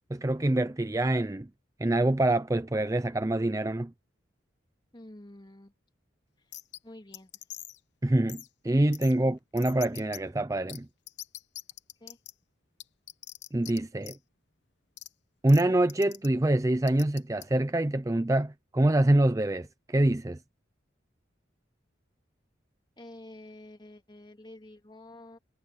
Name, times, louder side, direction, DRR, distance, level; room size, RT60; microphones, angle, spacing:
voice 1, 0.1-1.5 1.8-3.9 8.0-10.9 13.5-14.2 15.4-20.4, right 1 dB, 15° right, 0.5 m, -25 dB
voice 2, 4.9-5.7 6.8-7.3 9.2-9.4 12.0-12.2 23.0-25.4, left 1 dB, 25° left, 2.6 m, -48 dB
sound 1, 6.5-6.8 7.1-7.8 8.3-8.5 8.9-9.1 9.6-10.2 10.7-10.8 11.1-12.3 12.8-13.8 14.0-14.2 15.0-15.1 15.5-15.6 15.9-16.3 16.9-17.4, left 14 dB, 60° left, 1.0 m, -42 dB
head